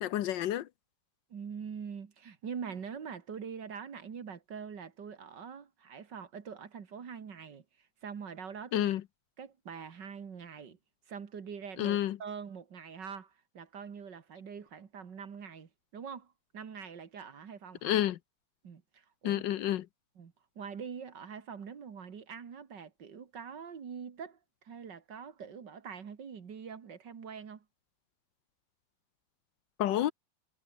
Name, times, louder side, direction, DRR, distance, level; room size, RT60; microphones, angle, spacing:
voice 1, 0.0-0.7 8.7-9.0 11.8-12.2 17.8-18.2 19.2-19.9 29.8-30.1, left 12 dB, 75° left, 1.4 m, -29 dB
voice 2, 1.3-7.6 8.0-8.9 9.4-10.8 11.1-18.0 18.6-19.4 20.2-24.4 24.6-27.6, right 6 dB, 65° right, 2.5 m, -44 dB
omnidirectional pair, 2.1 m